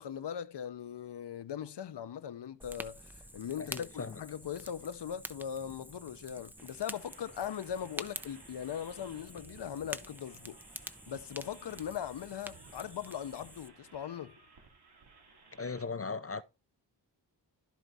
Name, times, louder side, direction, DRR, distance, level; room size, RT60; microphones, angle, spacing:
voice 1, 0.0-10.6 10.8-14.4, left 9 dB, 70° left, 0.7 m, -40 dB
Fire, 2.6-13.7, right 1 dB, 5° right, 0.7 m, -47 dB
voice 2, 3.6-4.2 15.6-16.4, left 4 dB, 35° left, 0.5 m, -38 dB
sound 1, 6.6-15.8, right 4 dB, 65° right, 2.7 m, -58 dB
12.0 x 4.5 x 4.0 m
wide cardioid pair, 80°, 43 cm